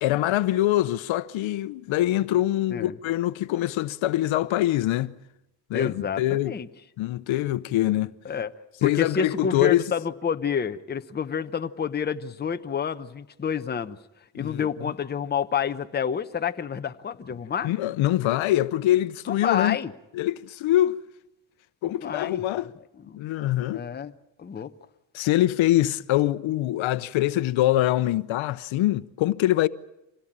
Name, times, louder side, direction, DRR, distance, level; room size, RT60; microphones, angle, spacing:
voice 1, 0.0-5.1 5.7-6.5 7.0-8.1 8.8-9.8 14.3-14.7 17.6-19.8 20.1-21.0 21.8-22.7 23.1-23.8 25.1-29.7, left 14 dB, 75° left, 0.9 m, -24 dB
voice 2, 5.7-6.7 8.2-8.5 8.8-14.0 14.3-17.7 19.3-19.9 21.8-22.4 23.1-23.2 23.7-24.1 24.4-24.7, left 7 dB, 20° left, 0.8 m, -29 dB
26.0 x 17.5 x 8.8 m
cardioid pair, 125°, 48 cm